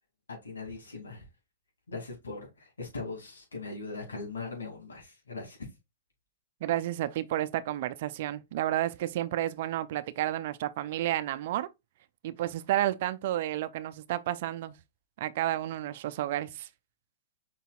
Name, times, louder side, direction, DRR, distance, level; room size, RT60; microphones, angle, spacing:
voice 1, 0.3-1.3 1.9-5.6, left 3 dB, 90° left, 2.3 m, -40 dB
voice 2, 6.6-11.7 12.2-14.8 15.2-16.7, right 13 dB, 60° right, 0.5 m, -31 dB
5.5 x 4.0 x 2.3 m
hypercardioid pair, 115°, 0 cm